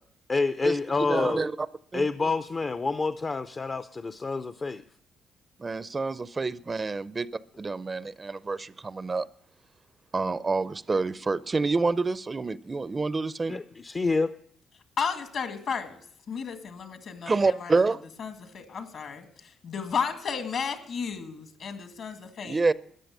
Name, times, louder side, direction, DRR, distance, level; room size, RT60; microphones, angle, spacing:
voice 1, 0.3-1.4 1.9-4.8 13.5-14.3, left 3 dB, 35° left, 0.5 m, -28 dB
voice 2, 1.1-1.5 1.9-2.0 5.6-7.3 7.6-9.3 10.1-13.6 17.3-18.0 22.4-22.7, right 3 dB, 30° right, 0.5 m, -27 dB
voice 3, 15.0-16.0 16.3-17.7 18.2-22.7, left 6 dB, 65° left, 2.0 m, -33 dB
14.0 x 10.0 x 6.5 m
cardioid pair, 90°, 0 cm